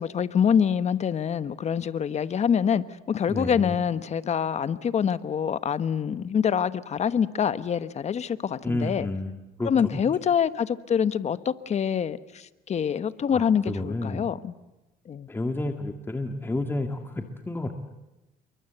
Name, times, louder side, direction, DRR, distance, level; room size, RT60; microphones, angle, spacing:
voice 1, 0.0-9.1 9.6-14.5 15.1-15.3, left 7 dB, 40° left, 14 dB, 1.2 m, -25 dB
voice 2, 3.3-3.8 8.6-10.0 13.3-14.3 15.3-17.7, left 2 dB, 15° left, 5 dB, 2.0 m, -31 dB
27.5 x 23.5 x 8.1 m, 1.0 s
cardioid pair, 110°, 17 cm